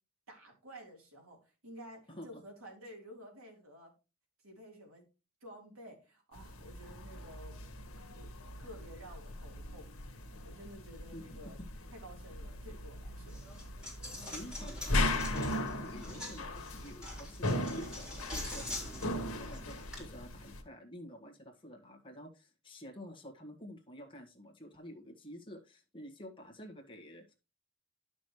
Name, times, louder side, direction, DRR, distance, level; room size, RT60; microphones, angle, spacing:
voice 1, 0.3-3.9 4.4-5.0 5.4-7.6 8.0-8.3 8.6-11.6 11.9-13.4, equal, 75° right, 0 dB, 3.5 m, -52 dB
voice 2, 2.1-2.4 11.1-11.5 14.1-27.3, equal, 25° left, 1 dB, 1.5 m, -49 dB
sound 1, 6.3-20.6, left 1 dB, 90° left, 1.5 m, -38 dB
Coin (dropping), 13.3-20.0, left 1 dB, 5° right, 4.1 m, -45 dB
11.5 x 6.2 x 3.1 m, 0.30 s
head